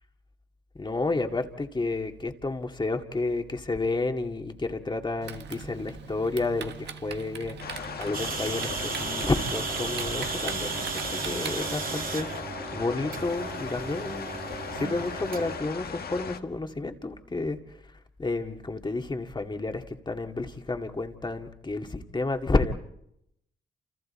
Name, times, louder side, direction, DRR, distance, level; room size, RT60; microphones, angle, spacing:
voice 1, 0.8-7.6 8.0-12.3 12.7-17.6 18.2-22.7, left 3 dB, 25° left, 4 dB, 2.2 m, -30 dB
Typing, 5.2-12.1, right 7 dB, 70° right, 1.5 m, -41 dB
sound 1, 7.6-16.4, left 6 dB, 60° left, 1.5 m, -38 dB
sound 2, 8.1-15.6, right 5 dB, 50° right, 2.0 m, -35 dB
29.5 x 28.0 x 4.4 m, 0.78 s
cardioid pair, 80°, 18 cm